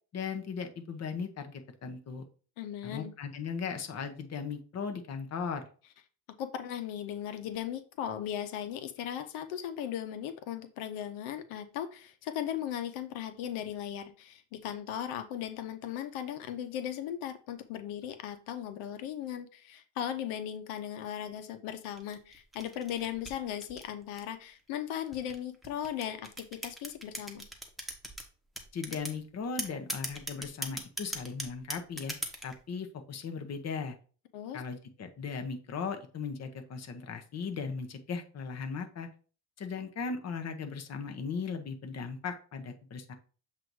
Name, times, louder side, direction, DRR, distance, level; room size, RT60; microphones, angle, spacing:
voice 1, 0.1-2.3 2.8-5.7 28.7-32.2 32.4-34.0 34.5-39.1 39.6-43.1, left 5 dB, 35° left, 6 dB, 0.9 m, -37 dB
voice 2, 2.6-3.1 6.4-27.4 34.3-34.6, left 10 dB, 85° left, 9 dB, 0.9 m, -37 dB
sound 1, 22.0-24.4 25.1-28.2 28.6-29.2 29.6-32.6, right 1 dB, ahead, 1.1 m, -38 dB
7.5 x 2.7 x 4.7 m, 0.39 s
cardioid pair, 115°, 47 cm